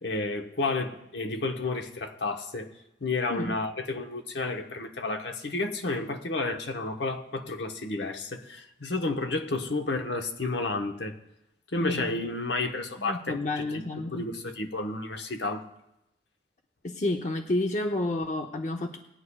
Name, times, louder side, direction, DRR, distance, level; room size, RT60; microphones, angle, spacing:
voice 1, 0.0-2.7 3.0-11.1 11.7-13.4 13.7-15.7, left 3 dB, 70° left, 1.0 m, -31 dB
voice 2, 11.7-12.1 13.0-14.3 16.8-19.0, left 2 dB, 40° left, 0.7 m, -30 dB
20.0 x 9.7 x 2.3 m
head